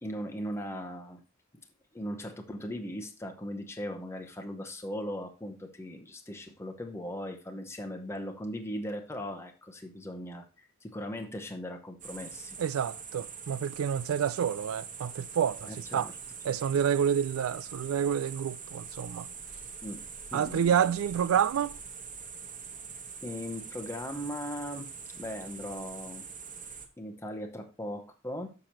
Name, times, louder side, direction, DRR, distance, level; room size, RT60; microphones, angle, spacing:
voice 1, 0.0-1.2 1.9-12.6 15.7-16.1 16.5-16.6 19.8-20.0 20.3-20.8 23.2-24.9 25.2-26.3 27.0-28.5, equal, 15° left, 0.8 m, -38 dB
sound 1, 12.0-26.9, right 6 dB, 40° right, 1.2 m, -44 dB
voice 2, 12.6-16.1 16.4-19.3 20.3-21.8, right 8 dB, 85° right, 0.3 m, -28 dB
6.8 x 5.8 x 4.3 m
head